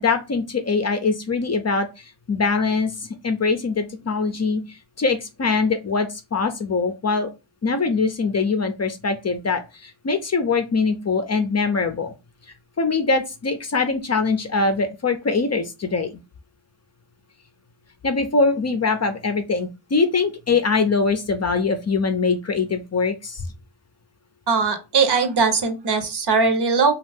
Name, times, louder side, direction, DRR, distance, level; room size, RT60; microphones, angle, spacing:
voice 1, 0.0-7.3 7.6-12.1 12.5-16.2 18.0-23.5, left 4 dB, 35° left, 7 dB, 0.5 m, -23 dB
voice 2, 24.5-26.9, right 4 dB, 55° right, 6 dB, 0.9 m, -20 dB
2.6 x 2.4 x 3.4 m, 0.26 s
cardioid pair, 55°, 48 cm